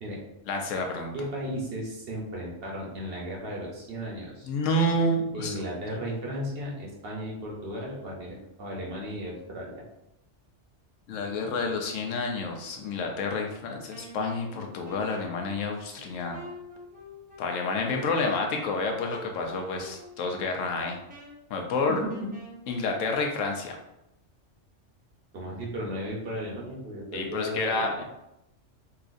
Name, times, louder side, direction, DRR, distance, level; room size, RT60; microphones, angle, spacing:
voice 1, 0.5-1.1 4.4-5.6 11.1-16.4 17.4-21.0 21.5-22.0 22.7-23.8 27.1-28.0, left 2 dB, 85° left, 3 dB, 1.0 m, -29 dB
voice 2, 1.1-4.5 5.3-9.8 22.0-22.3 25.3-28.0, equal, 55° right, -3 dB, 0.9 m, -35 dB
Wind instrument woodwind instrument, 13.9-22.9, left 1 dB, 10° right, 0.5 m, -47 dB
3.9 x 2.4 x 2.5 m, 0.87 s
omnidirectional pair, 1.3 m